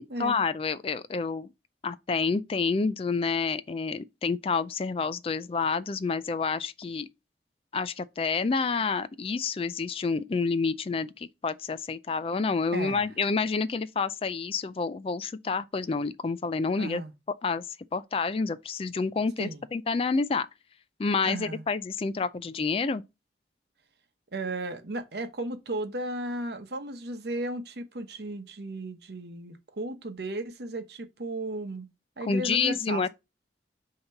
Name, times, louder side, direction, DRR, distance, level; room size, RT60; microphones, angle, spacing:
voice 1, 0.0-1.5 1.8-7.1 7.7-17.0 17.4-17.6 17.9-20.5 21.0-23.0 32.2-33.1, left 4 dB, 30° left, 0.3 m, -28 dB
voice 2, 16.8-17.1 19.4-19.6 21.2-21.6 24.3-31.9 32.2-33.1, right 2 dB, 65° right, 0.9 m, -35 dB
6.5 x 2.9 x 5.7 m
head